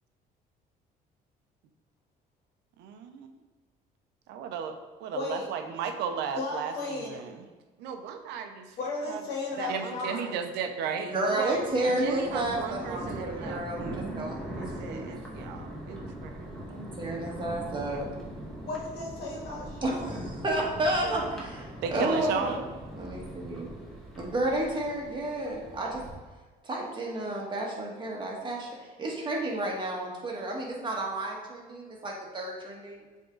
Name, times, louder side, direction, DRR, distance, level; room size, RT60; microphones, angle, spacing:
voice 1, 4.3-4.7 5.0-7.4 7.8-8.8 9.1-9.2 9.6-11.6 11.9-16.3 17.9-18.0 21.8-22.7, right 7 dB, 85° right, 7 dB, 0.7 m, -35 dB
voice 2, 5.1-5.5 6.3-7.2 8.8-10.4 18.7-20.3, left 3 dB, 80° left, -3 dB, 1.9 m, -35 dB
voice 3, 11.0-15.1 16.7-18.1 19.8-22.6 23.0-23.7 24.2-26.0 26.6-33.0, right 1 dB, 30° right, -2 dB, 1.6 m, -31 dB
Thunder, 11.4-26.1, right 1 dB, 5° left, 1.5 m, -41 dB
7.7 x 3.7 x 3.9 m, 1.3 s
cardioid pair, 110°, 17 cm